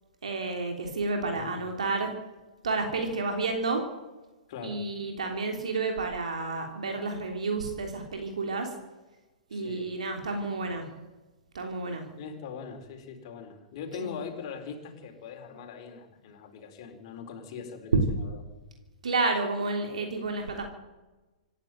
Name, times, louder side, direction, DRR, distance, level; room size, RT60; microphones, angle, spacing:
voice 1, 0.2-2.1 2.6-3.8 4.6-8.7 9.5-10.9 11.5-12.0 14.0-14.1 19.0-20.6, right 3 dB, 70° right, 3 dB, 3.3 m, -30 dB
voice 2, 1.3-1.7 4.5-4.8 9.5-9.9 12.2-18.4, left 6 dB, 45° left, 4 dB, 4.3 m, -41 dB
26.5 x 11.0 x 9.0 m, 1.1 s
figure-of-eight pair, 105°, 4 cm